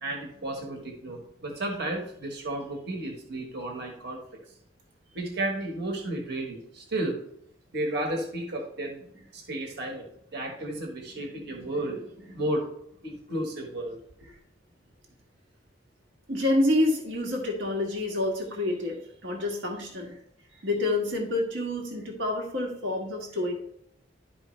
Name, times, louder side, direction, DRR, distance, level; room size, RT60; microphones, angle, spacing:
voice 1, 0.0-4.2 5.1-7.2 7.7-10.0 10.3-12.7 13.0-14.0, right 1 dB, 60° right, 2 dB, 1.4 m, -33 dB
voice 2, 16.3-20.1 20.6-23.5, left 1 dB, 90° right, 1 dB, 1.6 m, -28 dB
11.5 x 4.9 x 3.2 m, 0.73 s
head